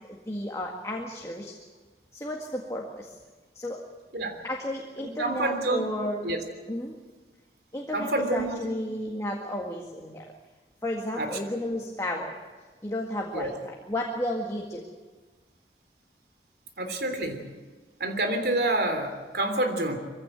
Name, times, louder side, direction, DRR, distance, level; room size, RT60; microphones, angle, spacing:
voice 1, 0.1-1.6 2.1-3.1 3.6-3.8 4.4-6.4 6.7-7.0 7.7-10.3 10.8-12.4 12.8-14.9, left 1 dB, 15° left, 0 dB, 1.9 m, -33 dB
voice 2, 5.0-5.9 6.2-6.4 7.9-8.6 11.2-11.4 13.3-13.5 16.8-17.4 18.0-20.0, right 2 dB, 65° right, 6 dB, 3.3 m, -28 dB
23.0 x 16.0 x 9.1 m, 1.4 s
head